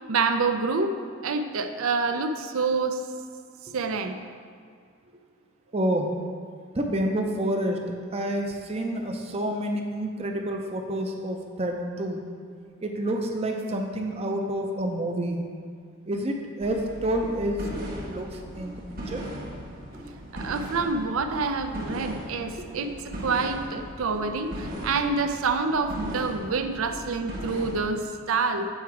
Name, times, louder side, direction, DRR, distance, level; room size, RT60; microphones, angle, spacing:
voice 1, 0.1-0.9 1.2-3.0 3.7-4.2 20.3-22.9 23.2-28.7, right 4 dB, 75° right, 8 dB, 0.5 m, -27 dB
voice 2, 5.7-6.1 6.7-7.8 8.1-12.2 12.8-15.4 16.1-18.3 18.6-18.8 19.1-19.2 22.6-22.7, right 1 dB, 30° right, 3 dB, 0.5 m, -28 dB
sound 1, 16.6-27.9, equal, 45° right, 1.3 m, -38 dB
7.9 x 4.7 x 4.6 m, 2.1 s
head